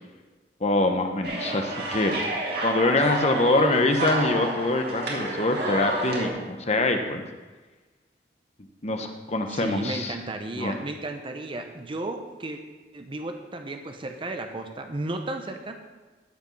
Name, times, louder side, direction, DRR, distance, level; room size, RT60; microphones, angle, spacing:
voice 1, 0.6-2.1 2.6-7.2 8.8-10.1 10.6-10.8, left 2 dB, 35° left, 5 dB, 1.0 m, -24 dB
sound 1, 1.2-6.3, right 2 dB, 60° right, 2.1 m, -30 dB
voice 2, 9.5-12.6 12.9-15.8, right 2 dB, 30° right, 5 dB, 0.7 m, -34 dB
13.0 x 5.3 x 5.4 m, 1.3 s
head